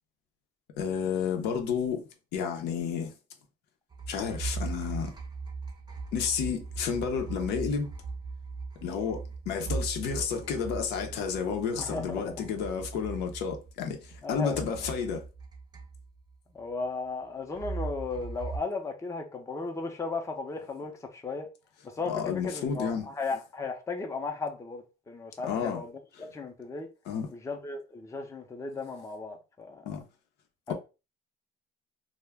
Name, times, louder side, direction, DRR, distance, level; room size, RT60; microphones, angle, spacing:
voice 1, 0.8-3.1 4.1-5.1 6.1-7.9 8.8-15.2 22.1-23.1 25.4-25.8 27.1-27.3 29.9-30.0, left 6 dB, 85° left, 0.7 m, -31 dB
sound 1, 3.9-14.2 14.5-16.3 17.5-18.6, right 4 dB, 25° right, 0.6 m, -39 dB
voice 2, 11.8-12.4 14.2-14.6 16.5-21.5 21.8-25.9 26.2-26.9 27.3-29.8 30.7-30.8, left 4 dB, 15° left, 0.5 m, -35 dB
2.3 x 2.1 x 3.4 m
cardioid pair, 110°, 17 cm